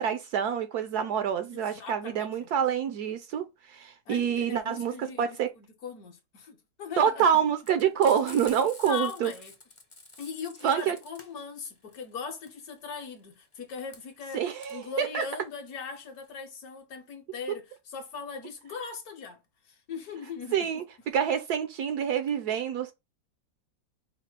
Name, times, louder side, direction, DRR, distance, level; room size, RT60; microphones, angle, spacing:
voice 1, 0.0-5.5 7.0-9.3 10.6-11.0 14.3-15.2 20.5-20.8 21.1-22.9, right 8 dB, 70° right, 1.0 m, -27 dB
voice 2, 1.5-2.5 4.1-7.4 8.0-8.2 8.6-9.5 10.2-20.7, left 5 dB, 60° left, 1.2 m, -40 dB
Frying (food), 7.6-16.4, left 3 dB, 30° left, 0.6 m, -49 dB
4.9 x 2.1 x 4.4 m
omnidirectional pair, 2.0 m